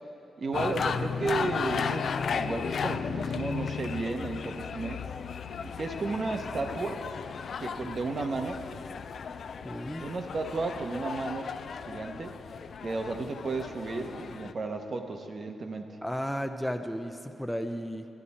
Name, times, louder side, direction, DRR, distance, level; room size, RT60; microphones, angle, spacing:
voice 1, 0.4-5.0 5.6-7.0 7.6-8.6 10.0-12.4 12.8-15.9, right 3 dB, 50° right, 5 dB, 0.9 m, -33 dB
sound 1, 0.5-14.5, left 6 dB, 65° left, 0.3 m, -35 dB
voice 2, 9.6-10.0 16.0-18.1, equal, 5° left, 6 dB, 0.5 m, -33 dB
13.0 x 9.8 x 4.2 m, 3.0 s
cardioid pair, 70°, 0 cm